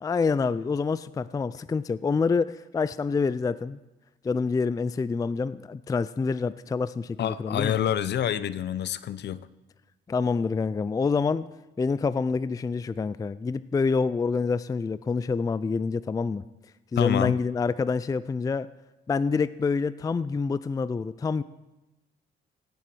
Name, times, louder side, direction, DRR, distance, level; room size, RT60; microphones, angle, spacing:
voice 1, 0.0-3.8 4.2-7.7 10.1-11.5 11.8-16.4 16.9-18.7 19.1-21.4, left 4 dB, 20° left, 16 dB, 0.3 m, -27 dB
voice 2, 7.2-9.5 17.0-17.4, left 10 dB, 60° left, 16 dB, 0.6 m, -27 dB
17.0 x 7.1 x 6.2 m, 1.0 s
cardioid pair, 90°, 20 cm